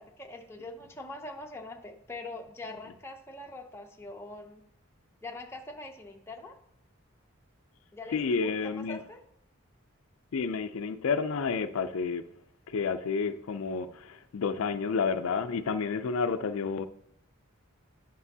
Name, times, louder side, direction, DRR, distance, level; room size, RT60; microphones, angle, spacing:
voice 1, 0.0-4.6 5.2-6.6 7.9-9.2, left 2 dB, 10° left, 0.6 m, -43 dB
voice 2, 8.1-9.0 10.3-12.2 12.7-16.9, left 5 dB, 75° left, 0.4 m, -30 dB
9.5 x 6.0 x 2.7 m
head